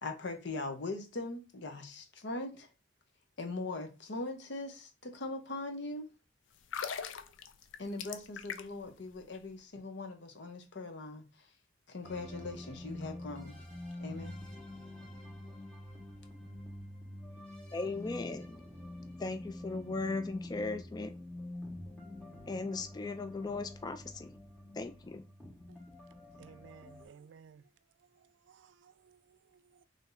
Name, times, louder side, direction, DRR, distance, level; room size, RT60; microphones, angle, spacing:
voice 1, 0.0-2.7 3.4-6.1 7.8-11.5 11.9-13.6 14.0-14.3, left 2 dB, 65° left, 0.8 m, -41 dB
sound 1, 6.6-8.9 9.2-9.4, left 7 dB, 85° left, 0.4 m, -40 dB
sound 2, 12.0-27.1, left 1 dB, 5° left, 1.1 m, -47 dB
voice 2, 17.7-18.6 19.2-21.2 22.5-24.4 24.7-25.2, left 3 dB, 20° left, 0.3 m, -37 dB
voice 3, 26.3-27.7 28.0-29.8, right 6 dB, 70° right, 0.3 m, -58 dB
3.4 x 2.6 x 3.8 m
head